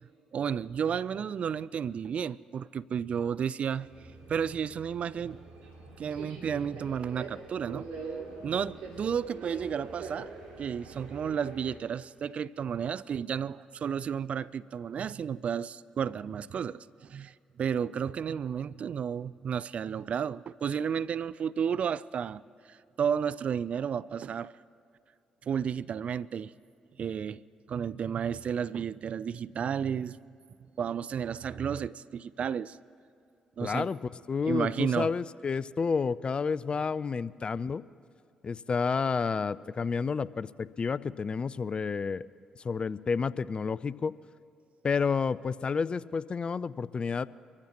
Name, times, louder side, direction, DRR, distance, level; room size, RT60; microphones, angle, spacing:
voice 1, 0.3-3.9 4.3-5.4 6.0-7.9 8.4-10.3 10.6-22.4 22.7-24.5 25.4-26.5 27.0-27.4 27.7-30.2 30.8-32.8 33.6-33.9 34.4-35.1, right 7 dB, 55° right, 0.4 m, -32 dB
Subway metro underground, 3.8-11.8, right 4 dB, 80° right, 2.7 m, -44 dB
voice 2, 33.6-34.0 34.3-37.8 38.4-42.3 42.6-44.1 44.8-47.3, left 5 dB, 40° left, 0.4 m, -30 dB
24.0 x 14.5 x 3.0 m
hypercardioid pair, 45°, 3 cm